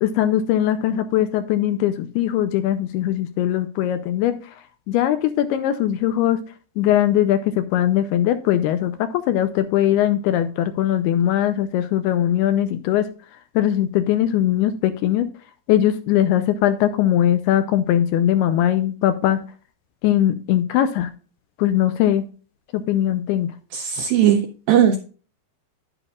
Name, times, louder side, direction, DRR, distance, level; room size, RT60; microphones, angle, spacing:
voice 1, 0.0-4.4 4.9-6.4 6.8-13.0 13.6-15.3 15.7-19.4 20.0-21.1 21.6-22.2 22.7-23.5, left 11 dB, 85° left, 10 dB, 2.3 m, -20 dB
voice 2, 23.7-25.0, right 9 dB, 85° right, 6 dB, 2.0 m, -18 dB
10.0 x 9.9 x 2.3 m, 0.38 s
omnidirectional pair, 4.9 m